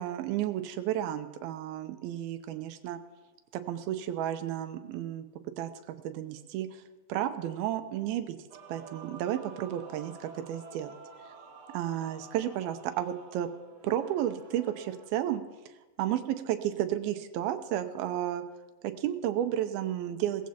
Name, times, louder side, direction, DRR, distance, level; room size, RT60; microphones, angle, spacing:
voice 1, 0.0-3.0 3.7-5.3 5.6-6.8 7.1-8.4 8.7-10.9 11.7-13.5 13.8-15.4 16.0-18.4 18.8-20.5, right 11 dB, 90° right, 8 dB, 2.6 m, -32 dB
Male singing / Female singing / Musical instrument, 8.5-15.1, right 4 dB, 55° right, 2.1 m, -50 dB
19.0 x 15.0 x 2.9 m, 1.2 s
omnidirectional pair, 4.2 m